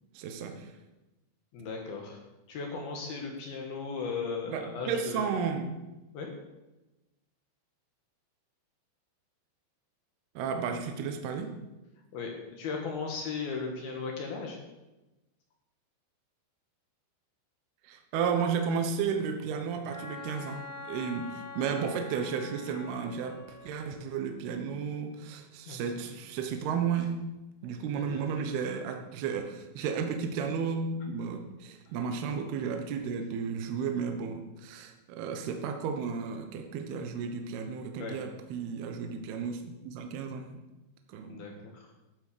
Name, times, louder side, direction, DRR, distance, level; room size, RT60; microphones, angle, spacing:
voice 1, 0.1-0.7 4.5-5.8 10.4-11.5 17.8-27.2 27.6-40.6 41.1-41.5, right 6 dB, 70° right, 5 dB, 2.5 m, -33 dB
voice 2, 1.5-2.2 2.5-5.3 6.1-6.3 12.1-14.6 25.7-25.8 27.9-28.2 38.0-38.2 41.3-41.9, left 4 dB, 65° left, 1 dB, 2.7 m, -37 dB
Wind instrument woodwind instrument, 19.9-23.8, left 4 dB, 5° right, 4.0 m, -44 dB
12.0 x 8.4 x 6.7 m, 1.0 s
omnidirectional pair, 5.9 m